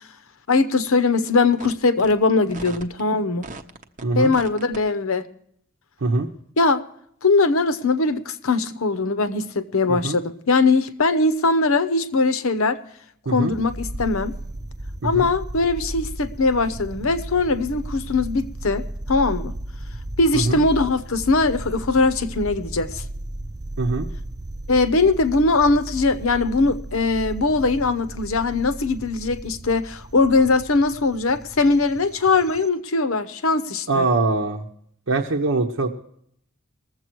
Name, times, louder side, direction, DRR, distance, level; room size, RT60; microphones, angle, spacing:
voice 1, 0.5-3.5 4.2-5.3 6.6-6.8 7.2-12.8 13.3-14.4 15.0-19.5 20.2-23.0 24.7-34.1, left 3 dB, 70° left, 0.9 m, -21 dB
sound 1, 1.6-1.7 2.0-2.1 2.5-3.0 3.4-4.0 4.3-4.8, right 3 dB, 35° right, 0.8 m, -37 dB
sound 2, 13.5-32.7, right 1 dB, 15° right, 0.4 m, -35 dB
voice 2, 23.8-24.1 33.9-34.7 35.1-35.9, right 3 dB, 60° right, 0.9 m, -22 dB
20.5 x 7.6 x 4.5 m
head